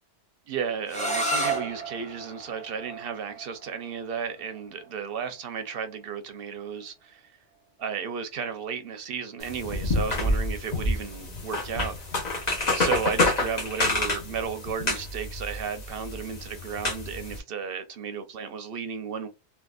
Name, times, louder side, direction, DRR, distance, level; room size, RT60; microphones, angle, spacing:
voice 1, 0.5-7.3 7.8-11.9 12.7-19.3, right 6 dB, 60° right, 0.8 m, -34 dB
sound 1, 0.9-6.6, right 2 dB, 10° left, 0.7 m, -34 dB
sound 2, 9.4-17.4, left 2 dB, 40° left, 1.0 m, -28 dB
3.6 x 2.2 x 2.4 m
omnidirectional pair, 1.1 m